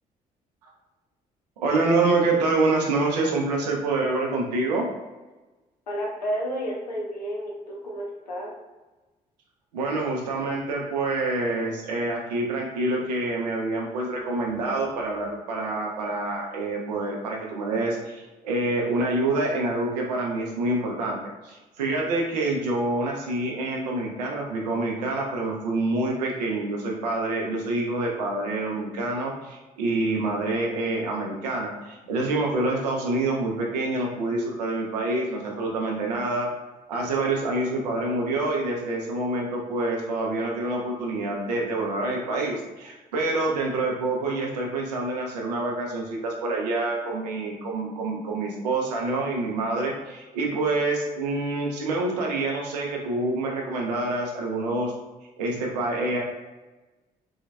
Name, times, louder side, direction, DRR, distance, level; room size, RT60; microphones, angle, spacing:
voice 1, 1.6-4.9 9.7-21.2 21.4-36.5 36.9-54.9 55.4-56.2, right 2 dB, 75° right, -1 dB, 0.8 m, -27 dB
voice 2, 5.9-8.5, equal, 85° left, -3 dB, 0.8 m, -31 dB
3.9 x 3.7 x 2.2 m, 1.1 s
figure-of-eight pair, 45°, 21 cm